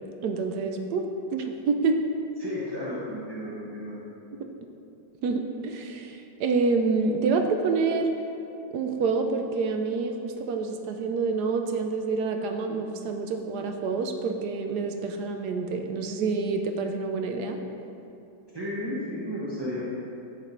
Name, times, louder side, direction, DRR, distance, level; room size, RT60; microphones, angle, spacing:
voice 1, 0.2-1.0 1.3-2.0 5.2-8.1 8.7-17.6, right 4 dB, 70° right, 5 dB, 1.1 m, -27 dB
voice 2, 2.4-4.0 18.5-19.8, left 1 dB, 25° right, -8 dB, 0.5 m, -33 dB
10.5 x 4.1 x 4.3 m, 2.6 s
omnidirectional pair, 1.9 m